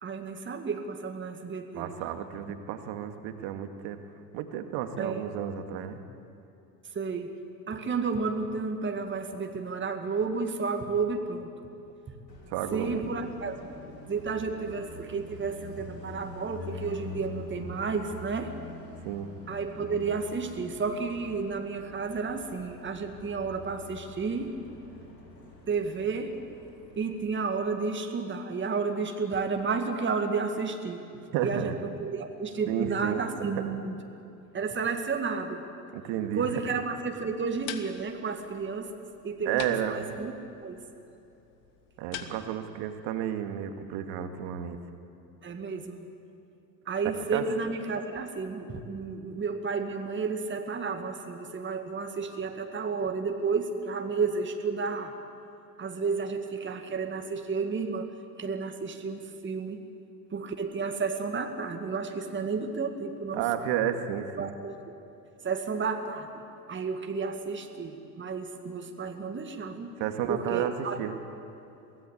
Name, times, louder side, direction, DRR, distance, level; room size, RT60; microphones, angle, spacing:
voice 1, 0.0-1.9 5.0-5.2 6.9-7.3 7.7-11.5 12.7-13.6 14.1-18.5 19.5-24.5 25.7-26.3 27.0-31.0 31.4-34.0 34.5-35.6 36.3-38.9 39.2-39.6 39.9-40.3 40.6-40.8 45.4-46.1 46.9-55.1 55.8-58.1 58.4-59.8 60.3-63.5 64.3-64.7 65.4-66.3 66.7-69.9 70.3-71.0, right 4 dB, 25° right, 5 dB, 2.1 m, -32 dB
voice 2, 1.7-4.0 4.3-6.0 12.5-13.0 19.0-19.3 31.3-31.8 32.7-33.5 35.9-36.5 39.5-40.2 42.0-44.8 47.3-47.4 63.3-64.5 70.0-71.2, right 10 dB, 55° right, 7 dB, 2.2 m, -32 dB
Car passing by, 12.3-27.2, left 3 dB, 90° left, 2.9 m, -45 dB
sound 1, 37.3-42.7, left 10 dB, 60° left, 1.8 m, -45 dB
23.0 x 17.5 x 8.4 m, 2.8 s
figure-of-eight pair, 70°, 49 cm